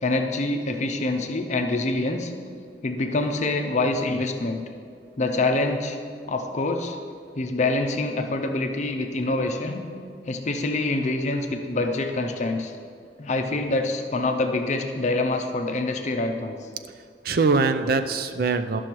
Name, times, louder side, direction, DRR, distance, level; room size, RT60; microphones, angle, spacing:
voice 1, 0.0-2.3 2.8-4.6 5.2-6.0 6.3-7.0 7.3-9.8 10.3-12.7 13.2-16.6, left 2 dB, 40° left, 4 dB, 0.6 m, -25 dB
voice 2, 16.9-18.8, right 4 dB, 55° right, 9 dB, 0.5 m, -23 dB
11.5 x 6.2 x 4.6 m, 2.3 s
head